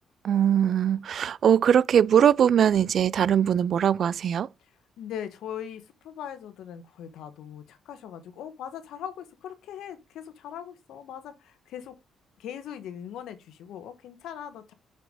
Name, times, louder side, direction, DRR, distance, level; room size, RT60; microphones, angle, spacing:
voice 1, 0.2-4.5, right 9 dB, 60° right, 0.3 m, -21 dB
voice 2, 5.0-12.0 12.4-14.7, left 9 dB, 80° left, 1.3 m, -40 dB
6.0 x 5.7 x 3.8 m
cardioid pair, 90°, 0 cm